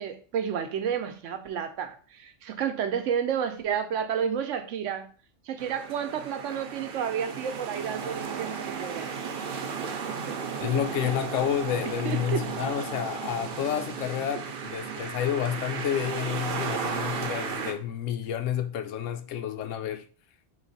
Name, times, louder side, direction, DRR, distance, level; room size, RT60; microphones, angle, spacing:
voice 1, 0.0-5.1 5.5-9.1 9.9-10.5 11.8-12.5, right 8 dB, 80° right, 1.0 m, -31 dB
sound 1, 5.6-17.7, right 6 dB, 55° right, 0.8 m, -34 dB
voice 2, 10.6-20.1, left 9 dB, 90° left, 1.0 m, -30 dB
4.0 x 3.1 x 4.0 m
omnidirectional pair, 1.3 m